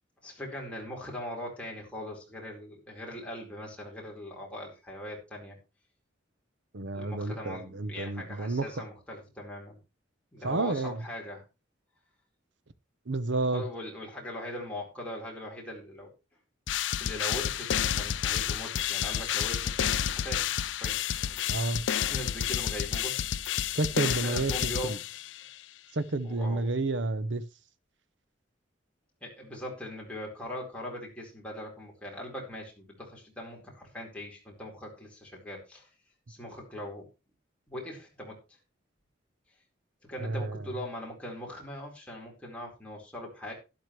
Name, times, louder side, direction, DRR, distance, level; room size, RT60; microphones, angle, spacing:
voice 1, 0.2-5.6 6.9-9.8 10.3-11.4 13.5-16.1 17.0-21.4 22.1-23.1 24.0-24.9 26.2-26.7 29.2-35.9 36.3-37.1 37.7-38.4 40.1-43.5, left 1 dB, 5° left, 4.3 m, -40 dB
voice 2, 6.7-8.7 10.4-11.0 13.1-13.6 21.5-21.8 23.7-25.0 25.9-27.4 40.2-40.6, right 2 dB, 65° right, 0.9 m, -30 dB
sound 1, 16.7-25.5, left 10 dB, 70° left, 0.5 m, -30 dB
12.0 x 11.5 x 3.2 m
head